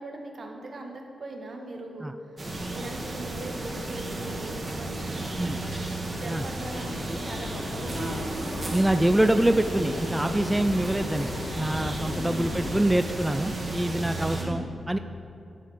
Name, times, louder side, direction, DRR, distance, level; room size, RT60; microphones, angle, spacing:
voice 1, 0.0-2.4 2.7-5.1 6.2-8.5 12.1-12.7 14.3-14.8, right 2 dB, 60° right, 2 dB, 1.3 m, -40 dB
sound 1, 2.4-14.4, right 2 dB, 40° right, 2.0 m, -33 dB
sound 2, 6.6-12.8, left 3 dB, 85° left, 0.6 m, -38 dB
voice 2, 8.7-11.3 11.6-15.0, right 1 dB, 10° right, 8 dB, 0.3 m, -25 dB
11.0 x 4.1 x 6.5 m, 2.7 s
cardioid pair, 60°, 0 cm